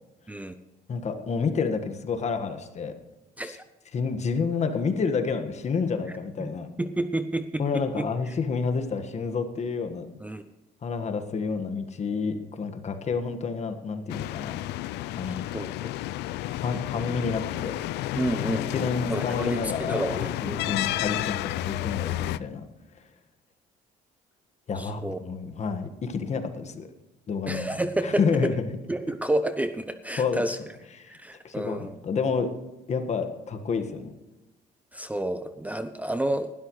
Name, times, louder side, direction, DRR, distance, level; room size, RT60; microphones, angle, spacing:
voice 1, 0.9-2.9 3.4-3.6 3.9-6.7 7.6-10.1 10.8-14.6 15.1-15.4 16.6-17.7 18.7-20.1 20.4-22.7 24.7-26.9 27.3-27.7 28.0-28.6 30.2-30.4 31.0-31.2 31.4-32.5 32.9-34.2, left 5 dB, 40° left, 7 dB, 1.6 m, -29 dB
voice 2, 6.8-8.1 10.2-10.4 15.5-15.9 18.1-20.7 24.8-25.2 27.5-28.5 28.9-30.6 31.1-31.9 34.9-36.5, right 1 dB, 10° right, 10 dB, 0.6 m, -30 dB
sound 1, 14.1-22.4, left 15 dB, 80° left, 0.5 m, -31 dB
19.0 x 12.5 x 3.2 m, 1.1 s
cardioid pair, 110°, 17 cm